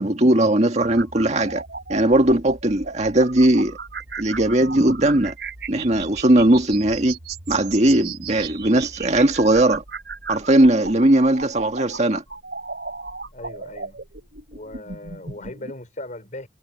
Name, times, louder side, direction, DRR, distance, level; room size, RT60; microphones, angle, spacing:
voice 1, 0.0-1.6 1.9-3.8 4.2-5.3 5.7-7.2 7.5-9.8 10.3-12.2, right 1 dB, 40° right, 1.9 m, -18 dB
sound 1, 0.8-15.7, right 4 dB, 70° right, 4.2 m, -35 dB
voice 2, 13.3-14.0 14.5-16.5, left 1 dB, 45° left, 4.5 m, -38 dB
head